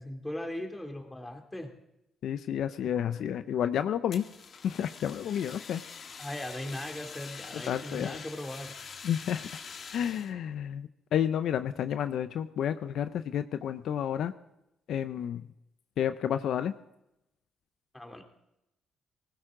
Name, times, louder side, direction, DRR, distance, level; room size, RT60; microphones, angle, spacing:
voice 1, 0.0-1.7 6.2-8.7 17.9-18.2, left 1 dB, 15° left, 3 dB, 2.7 m, -38 dB
voice 2, 2.2-4.2 4.6-5.8 7.5-8.2 9.0-9.5 9.9-14.3 14.9-15.5 16.0-16.7, left 9 dB, 70° left, 11 dB, 0.6 m, -30 dB
Fire, 4.1-10.3, left 5 dB, 55° left, 1.6 m, -45 dB
19.5 x 16.0 x 3.8 m, 0.87 s
cardioid pair, 90°, 0 cm